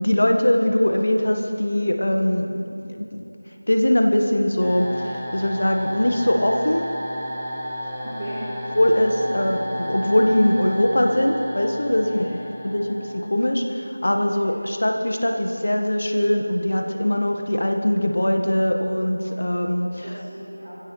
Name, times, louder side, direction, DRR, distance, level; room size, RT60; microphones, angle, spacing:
voice 1, 0.0-3.2 3.7-6.9 8.7-12.2 12.6-20.0, left 1 dB, 55° left, 3 dB, 1.7 m, -21 dB
sound 1, 4.6-13.5, equal, ahead, 1.2 m, -33 dB
voice 2, 8.0-8.4 9.2-9.3 12.0-12.7 14.3-14.6 17.0-17.2 20.0-20.7, right 1 dB, 30° right, -12 dB, 4.3 m, -38 dB
23.5 x 16.0 x 3.4 m, 2.8 s
figure-of-eight pair, 170°, 0 cm